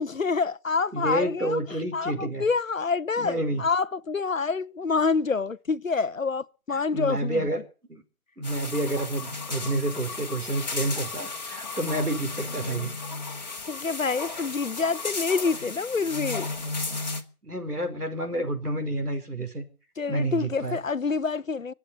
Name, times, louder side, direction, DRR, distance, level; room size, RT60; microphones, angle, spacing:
voice 1, 0.0-1.6 1.9-7.5 13.7-16.5 20.0-21.7, left 4 dB, 60° left, 0.9 m, -27 dB
voice 2, 0.9-2.4 3.2-3.6 6.7-7.6 7.9-8.0 8.4-12.9 17.4-19.6 20.1-20.8, right 1 dB, 90° right, 5.4 m, -29 dB
sound 1, 8.4-17.2, left 3 dB, 30° left, 1.9 m, -34 dB
24.5 x 8.4 x 6.8 m
figure-of-eight pair, 165°, 45 cm